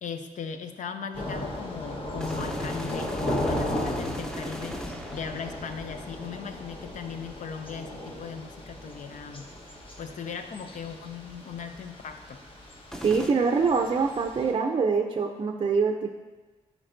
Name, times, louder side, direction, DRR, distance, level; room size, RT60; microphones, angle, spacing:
voice 1, 0.0-4.8 5.1-9.5 10.0-12.4, left 6 dB, 70° left, 8 dB, 0.6 m, -38 dB
Thunder / Rain, 1.1-14.5, left 1 dB, 40° left, 1.3 m, -36 dB
sound 1, 2.2-6.2 12.9-13.3, equal, 5° left, 0.6 m, -38 dB
voice 2, 13.0-16.1, right 5 dB, 40° right, 4 dB, 0.5 m, -24 dB
11.5 x 4.5 x 2.6 m, 1.3 s
cardioid pair, 80°, 13 cm